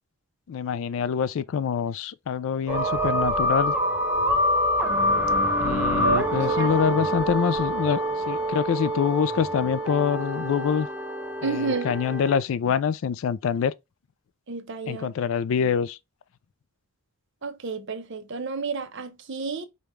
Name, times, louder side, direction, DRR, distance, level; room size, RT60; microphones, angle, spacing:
voice 1, 0.5-3.8 5.6-10.9 11.4-13.7 14.9-16.0, left 7 dB, 60° left, 0.3 m, -25 dB
sound 1, 2.7-12.4, equal, 10° right, 0.7 m, -26 dB
voice 2, 6.0-6.7 11.4-11.9 14.5-15.1 17.4-19.7, right 4 dB, 55° right, 0.7 m, -30 dB
5.1 x 2.3 x 3.0 m
head